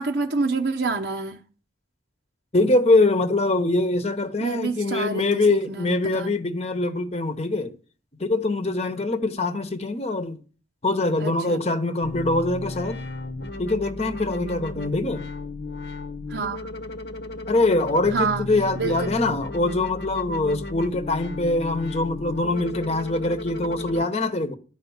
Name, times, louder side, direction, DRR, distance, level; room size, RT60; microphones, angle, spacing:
voice 1, 0.0-1.4 4.4-6.3 11.2-11.6 16.3-16.7 18.1-18.4 18.8-19.0, right 4 dB, 70° right, 0.8 m, -27 dB
voice 2, 2.5-7.7 8.2-10.4 10.8-13.0 13.6-15.3 17.5-24.5, left 2 dB, 35° left, 0.9 m, -23 dB
sound 1, 12.0-24.0, left 2 dB, 65° left, 0.9 m, -35 dB
12.0 x 5.0 x 7.1 m
head